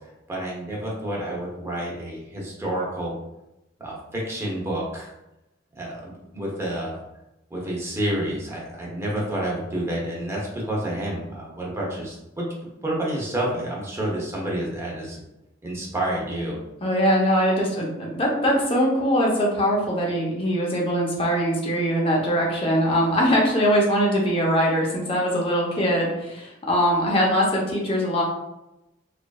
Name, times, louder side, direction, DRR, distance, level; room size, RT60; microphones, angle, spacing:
voice 1, 0.3-3.1 3.8-5.1 5.8-7.0 7.5-12.5 12.8-15.2 15.6-16.6, right 1 dB, 15° right, -4 dB, 0.7 m, -29 dB
voice 2, 16.8-28.2, equal, 30° left, -3 dB, 0.7 m, -22 dB
3.0 x 2.5 x 2.3 m, 0.92 s
head